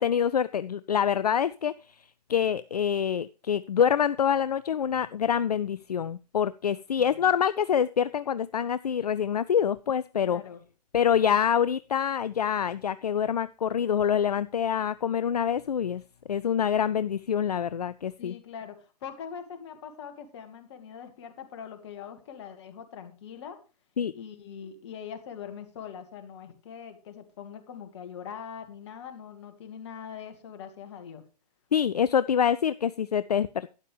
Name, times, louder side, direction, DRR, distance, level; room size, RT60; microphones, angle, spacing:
voice 1, 0.0-2.0 2.3-10.4 10.9-16.0 16.3-18.3 24.0-24.1 31.7-33.7, left 8 dB, 70° left, 16 dB, 0.4 m, -26 dB
voice 2, 7.0-7.3 10.2-10.6 18.2-23.6 24.1-31.2, left 7 dB, 45° left, 7 dB, 2.0 m, -42 dB
12.5 x 10.0 x 3.3 m, 0.34 s
figure-of-eight pair, 115°, 21 cm